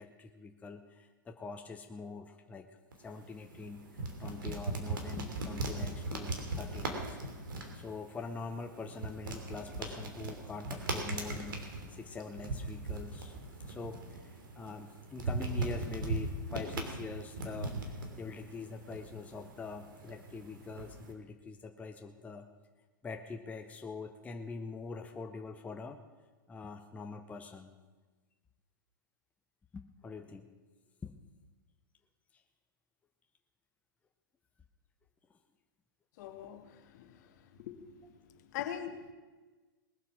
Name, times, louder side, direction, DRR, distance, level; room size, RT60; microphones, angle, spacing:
voice 1, 0.0-2.7 3.0-7.2 7.7-11.6 11.9-13.4 13.7-22.5 23.0-26.0 26.5-27.7 29.7-30.5 31.0-31.1, left 4 dB, 15° left, 4 dB, 0.8 m, -44 dB
sound 1, 2.9-21.1, right 2 dB, 80° right, 2.8 m, -39 dB
voice 2, 36.2-37.9 38.5-39.1, left 9 dB, 55° left, 7 dB, 1.6 m, -42 dB
20.5 x 7.4 x 6.1 m, 1.3 s
hypercardioid pair, 125°, 11 cm